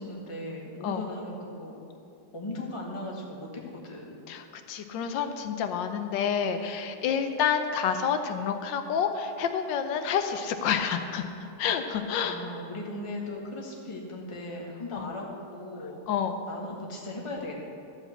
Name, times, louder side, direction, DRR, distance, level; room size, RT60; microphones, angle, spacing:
voice 1, 0.0-1.8 2.3-3.5 3.8-4.2 12.2-16.0 16.5-17.6, left 1 dB, 20° left, -2 dB, 1.4 m, -37 dB
voice 2, 4.3-12.4 14.9-15.1 16.1-16.4, left 7 dB, 85° left, 7 dB, 1.4 m, -29 dB
13.0 x 5.0 x 7.7 m, 2.5 s
omnidirectional pair, 1.9 m